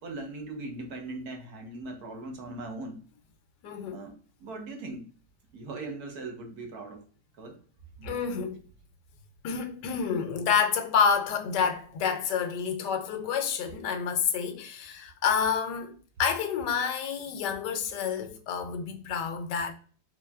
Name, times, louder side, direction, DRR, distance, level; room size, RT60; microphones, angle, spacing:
voice 1, 0.0-3.0 3.9-5.0 5.5-7.0 7.4-7.6 8.0-8.1, right 2 dB, 65° right, 1.4 m, -39 dB
voice 2, 3.6-4.0 8.0-8.6 9.4-19.7, left 6 dB, 85° left, 1.3 m, -28 dB
4.4 x 3.2 x 2.3 m
omnidirectional pair, 1.8 m